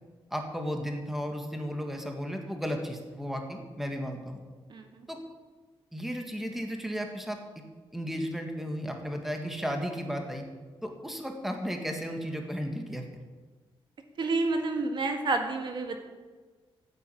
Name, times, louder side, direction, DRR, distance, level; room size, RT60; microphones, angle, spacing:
voice 1, 0.3-4.4 5.1-5.2 5.9-7.4 7.9-10.4 10.8-13.1, equal, 5° right, 3 dB, 1.8 m, -34 dB
voice 2, 4.7-5.0 14.2-16.0, right 3 dB, 55° right, 5 dB, 1.8 m, -29 dB
14.5 x 9.5 x 8.6 m, 1.4 s
wide cardioid pair, 155°, 9 cm